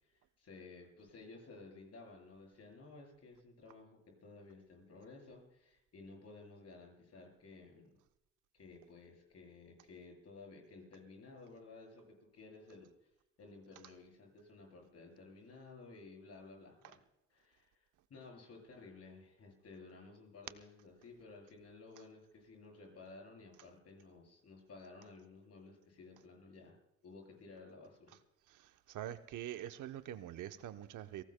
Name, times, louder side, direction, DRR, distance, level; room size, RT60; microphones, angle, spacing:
voice 1, 0.0-7.9 8.5-12.9 13.4-17.0 17.3-26.8 27.0-28.2, left 3 dB, 55° left, 7.9 m, -55 dB
voice 2, 28.5-31.2, right 12 dB, 80° right, 0.9 m, -45 dB
29.0 x 18.0 x 2.2 m
cardioid pair, 90°, 30 cm